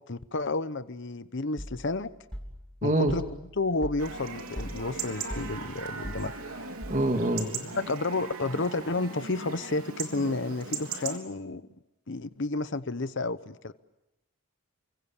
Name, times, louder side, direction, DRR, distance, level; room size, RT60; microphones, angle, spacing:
voice 1, 0.1-2.1 2.8-3.2 3.6-6.3 7.6-11.6 12.1-13.7, left 2 dB, 55° left, 13 dB, 0.9 m, -31 dB
sound 1, 1.6-7.4, equal, 5° left, 3.8 m, -42 dB
voice 2, 2.8-3.1 6.9-7.5, right 1 dB, 35° right, 4 dB, 2.2 m, -25 dB
Chatter / Livestock farm animals working animals / Chirp tweet, 4.0-11.2, right 4 dB, 75° right, 3.5 m, -38 dB
29.5 x 26.0 x 7.3 m, 0.90 s
head